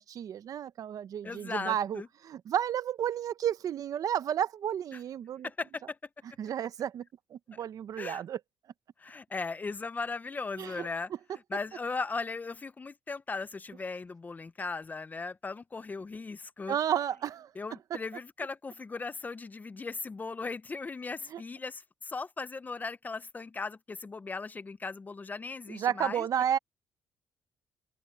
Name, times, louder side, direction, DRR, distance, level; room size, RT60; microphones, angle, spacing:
voice 1, 0.0-5.5 6.4-7.0 7.3-8.4 10.6-10.9 16.7-17.5 21.3-21.4 25.7-26.6, right 9 dB, 60° right, 0.9 m, -32 dB
voice 2, 1.2-2.1 5.4-6.0 8.0-8.2 9.0-16.8 17.6-26.3, left 4 dB, 25° left, 0.6 m, -38 dB
open air
cardioid pair, 100°, 7 cm